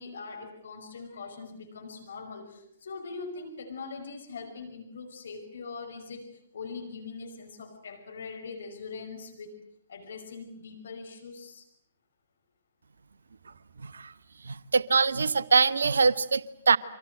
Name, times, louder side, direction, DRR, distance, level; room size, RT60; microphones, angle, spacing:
voice 1, 0.0-9.5 9.9-11.7, left 4 dB, 60° left, 5 dB, 5.7 m, -42 dB
voice 2, 13.8-14.1 14.5-16.8, right 5 dB, 70° right, 16 dB, 1.1 m, -23 dB
29.0 x 25.0 x 7.8 m, 0.70 s
figure-of-eight pair, 120°, 0 cm